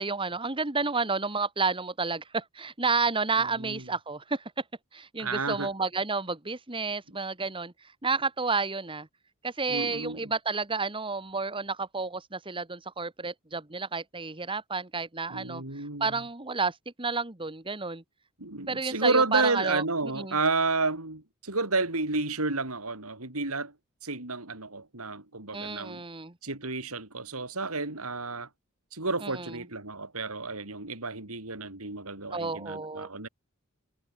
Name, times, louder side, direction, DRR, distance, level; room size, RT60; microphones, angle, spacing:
voice 1, 0.0-4.5 4.9-9.1 9.4-18.0 18.7-19.8 20.2-20.4 25.5-26.3 29.2-29.6 32.3-33.1, right 4 dB, 25° right, 1.8 m, -31 dB
voice 2, 5.2-5.7 9.7-10.3 15.3-16.2 18.4-23.7 24.0-26.0 26.4-28.5 28.9-33.3, right 3 dB, 85° right, 5.6 m, -31 dB
head